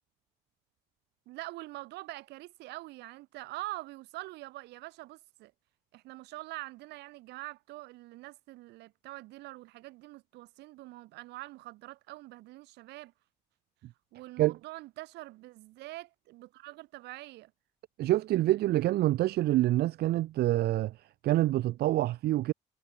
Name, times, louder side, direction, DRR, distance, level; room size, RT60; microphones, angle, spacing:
voice 1, 1.3-5.5 5.9-13.1 14.1-17.5, right 19 dB, 85° right, 3.7 m, -44 dB
voice 2, 18.0-22.5, right 15 dB, 70° right, 1.4 m, -27 dB
cardioid pair, 110°, 17 cm